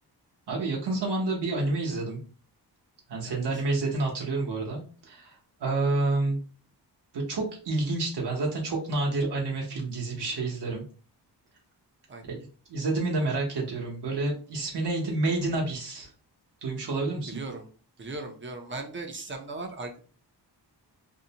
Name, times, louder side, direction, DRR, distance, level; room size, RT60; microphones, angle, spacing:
voice 1, 0.5-2.2 3.1-4.8 5.1-5.3 5.6-6.4 7.1-10.8 12.2-12.4 12.7-16.1 16.6-17.4, right 2 dB, 75° right, -1 dB, 0.8 m, -29 dB
voice 2, 3.3-3.6 12.1-12.3 17.3-17.7 18.0-20.0, right 3 dB, 30° right, 3 dB, 0.4 m, -38 dB
2.6 x 2.0 x 2.7 m, 0.39 s
wide cardioid pair, 140°, 41 cm